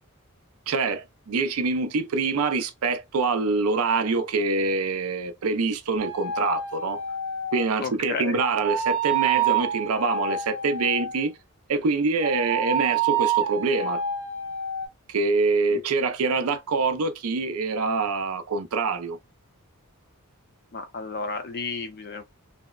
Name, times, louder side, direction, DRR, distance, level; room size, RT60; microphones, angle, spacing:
voice 1, 0.7-7.0 7.5-11.3 11.7-14.0 15.1-19.2, right 4 dB, 70° right, 0.5 m, -25 dB
sound 1, 6.0-7.7 8.4-11.3 12.2-14.9, right 6 dB, 10° right, 0.9 m, -27 dB
voice 2, 7.8-8.4 15.7-15.8 20.7-22.2, left 4 dB, 45° left, 0.5 m, -32 dB
2.7 x 2.1 x 2.3 m
head